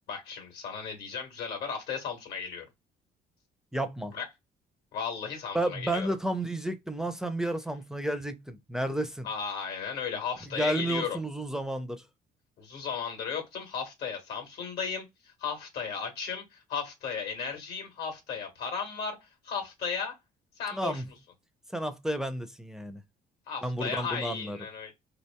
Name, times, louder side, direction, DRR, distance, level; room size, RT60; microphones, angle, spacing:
voice 1, 0.1-2.6 4.1-4.2 4.9-6.1 9.2-11.2 12.6-19.2 19.4-20.1 20.6-21.0 23.5-24.9, left 6 dB, 75° left, 1.3 m, -35 dB
voice 2, 3.7-4.1 5.5-9.3 10.6-12.0 20.7-21.1 21.7-23.0 23.6-24.6, right 1 dB, 5° right, 0.4 m, -31 dB
2.8 x 2.5 x 2.2 m
cardioid pair, 110°, 17 cm